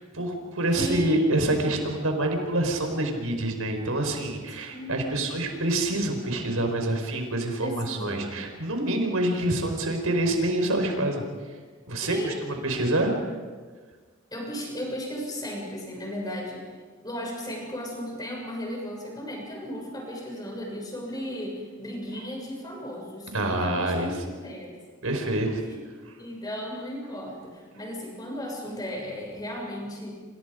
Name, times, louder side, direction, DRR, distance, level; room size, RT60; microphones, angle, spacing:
voice 1, 0.1-11.2 11.9-13.1 23.3-24.1 25.0-25.6, right 1 dB, 85° right, 4 dB, 5.2 m, -26 dB
voice 2, 0.7-1.5 4.7-5.2 7.6-8.3 12.0-13.1 14.3-16.7 17.0-24.8 25.7-25.8 26.2-30.1, equal, 20° left, 0 dB, 6.9 m, -35 dB
29.0 x 28.5 x 5.3 m, 1.5 s
head